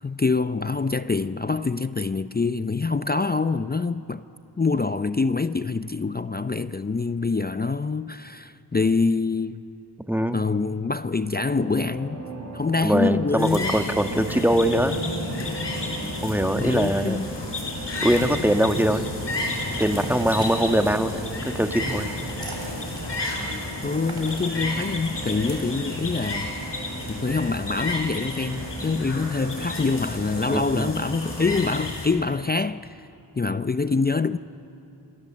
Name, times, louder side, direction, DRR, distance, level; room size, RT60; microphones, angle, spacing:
voice 1, 0.0-4.2 4.6-9.6 10.3-12.2 12.5-13.8 16.6-17.3 23.8-26.5 27.1-33.1 33.4-34.4, left 4 dB, 25° left, 0.5 m, -25 dB
voice 2, 10.1-10.5 12.8-15.0 16.2-17.2 18.0-19.1 19.8-21.2 21.5-22.1 30.5-30.9, right 1 dB, 5° right, 1.6 m, -22 dB
sound 1, 11.5-31.4, right 2 dB, 40° right, 5.4 m, -38 dB
sound 2, 13.4-32.1, left 2 dB, 85° left, 5.8 m, -32 dB
sound 3, 19.8-25.7, right 2 dB, 65° right, 4.6 m, -42 dB
27.5 x 24.0 x 7.5 m
cardioid pair, 50°, 41 cm